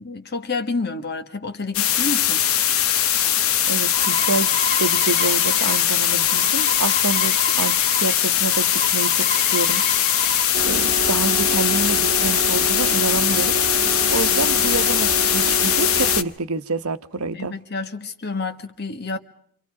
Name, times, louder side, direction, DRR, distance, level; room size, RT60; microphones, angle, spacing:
voice 1, 0.0-2.4 17.3-19.2, left 3 dB, 50° left, 1.6 m, -29 dB
sound 1, 1.7-16.2, left 10 dB, 75° left, 1.0 m, -20 dB
sound 2, 3.4-8.1 8.4-10.4, left 3 dB, 30° left, 1.3 m, -30 dB
voice 2, 3.7-9.8 10.6-13.6 14.1-17.5, right 4 dB, 85° right, 0.9 m, -27 dB
sound 3, 10.5-16.2, right 3 dB, 50° right, 1.7 m, -28 dB
28.5 x 26.5 x 4.8 m
head